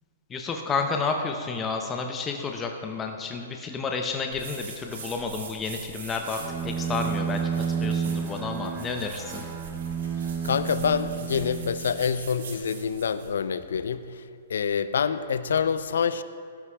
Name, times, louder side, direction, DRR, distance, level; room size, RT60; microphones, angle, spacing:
voice 1, 0.3-9.4, left 4 dB, 20° left, 3 dB, 0.7 m, -31 dB
sound 1, 4.3-13.3, right 4 dB, 65° right, 2.3 m, -43 dB
Bowed string instrument, 6.4-12.2, right 7 dB, 30° right, 0.9 m, -31 dB
voice 2, 10.4-14.2 14.5-16.2, left 6 dB, 70° left, 14 dB, 0.4 m, -26 dB
16.0 x 12.5 x 2.3 m, 2.3 s
figure-of-eight pair, 115°, 0 cm